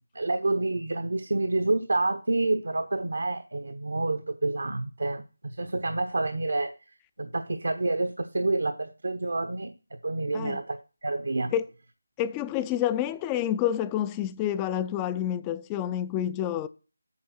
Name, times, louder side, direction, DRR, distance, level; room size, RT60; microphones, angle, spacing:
voice 1, 0.1-5.2 5.6-6.7 7.2-9.7 10.0-10.8 11.0-11.5, right 2 dB, 65° right, 1.0 m, -28 dB
voice 2, 12.2-16.7, left 11 dB, 15° left, 0.5 m, -28 dB
8.7 x 6.9 x 5.9 m
figure-of-eight pair, 160°, 0 cm